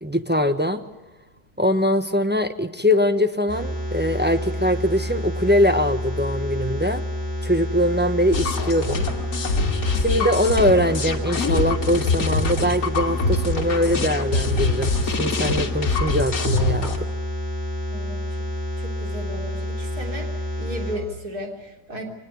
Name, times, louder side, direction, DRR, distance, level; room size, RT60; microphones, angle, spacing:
voice 1, 0.0-0.8 1.6-7.0 7.4-9.1 10.0-17.0, equal, 10° right, 7 dB, 0.9 m, -22 dB
sound 1, 3.5-20.9, left 1 dB, 35° right, 8.2 m, -29 dB
sound 2, 8.3-17.0, left 3 dB, 60° left, 2.4 m, -25 dB
voice 2, 17.9-18.2 18.8-20.3 20.6-22.0, equal, 65° right, 2 dB, 4.2 m, -34 dB
24.0 x 19.5 x 9.7 m, 1.0 s
omnidirectional pair, 1.8 m